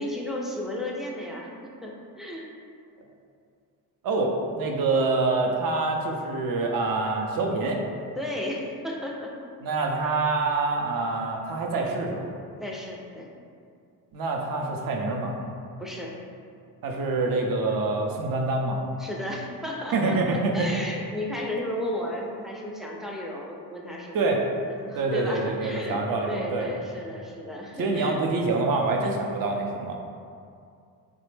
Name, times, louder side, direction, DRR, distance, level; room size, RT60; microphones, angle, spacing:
voice 1, 0.0-2.5 8.2-9.3 12.6-13.3 15.8-16.2 19.0-26.0 26.3-28.2, left 1 dB, ahead, -2 dB, 0.3 m, -34 dB
voice 2, 4.0-7.8 9.6-12.3 14.1-15.4 16.8-18.8 19.9-20.7 24.1-24.4 25.0-26.7 27.8-30.0, right 3 dB, 60° right, 1 dB, 0.6 m, -26 dB
3.3 x 2.0 x 3.1 m, 2.3 s
cardioid pair, 75°, 38 cm